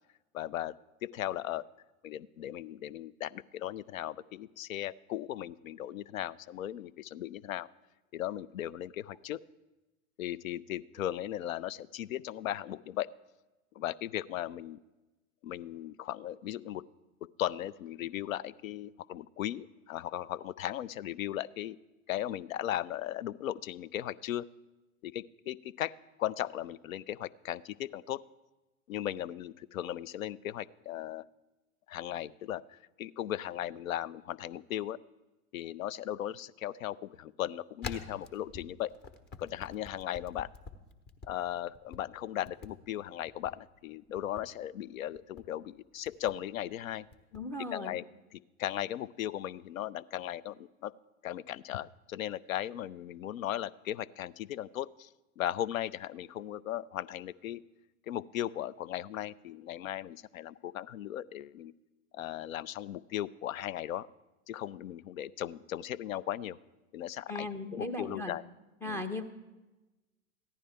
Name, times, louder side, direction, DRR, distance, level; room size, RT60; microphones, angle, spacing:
voice 1, 0.3-0.8 1.0-1.6 2.0-7.7 8.1-9.4 10.2-13.1 13.8-14.8 15.4-16.8 17.4-21.8 22.1-24.5 25.0-25.9 26.2-28.2 28.9-31.2 31.9-35.0 35.5-38.9 39.4-40.5 41.3-47.1 47.7-48.1 48.3-50.9 51.2-55.1 55.4-57.6 58.1-61.7 62.1-64.1 64.5-66.6 66.9-68.4 68.8-69.0, left 12 dB, 70° left, 22 dB, 0.5 m, -37 dB
sound 1, 37.8-41.3 41.7-42.0 42.4-42.7 43.3-43.5 44.2-44.5 45.1-45.4 46.0-46.4 47.1-47.4, left 4 dB, 25° left, 0.9 m, -45 dB
voice 2, 47.3-48.0 67.3-68.3 68.8-69.2, left 2 dB, 5° left, 7 dB, 0.4 m, -37 dB
14.5 x 11.0 x 3.4 m, 1.1 s
figure-of-eight pair, 95°, 42 cm